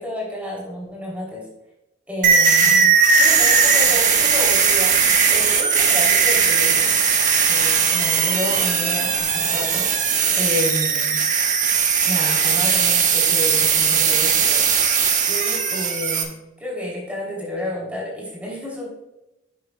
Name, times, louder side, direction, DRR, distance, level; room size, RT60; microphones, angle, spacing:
voice 1, 0.0-1.5 2.1-5.0 5.3-6.9 7.5-9.9 10.4-11.2 12.0-14.6 15.3-16.3 16.6-18.9, left 1 dB, 5° right, -4 dB, 3.4 m, -30 dB
sound 1, 2.2-16.2, right 6 dB, 40° right, 1.3 m, -18 dB
12.0 x 7.7 x 2.3 m, 0.93 s
head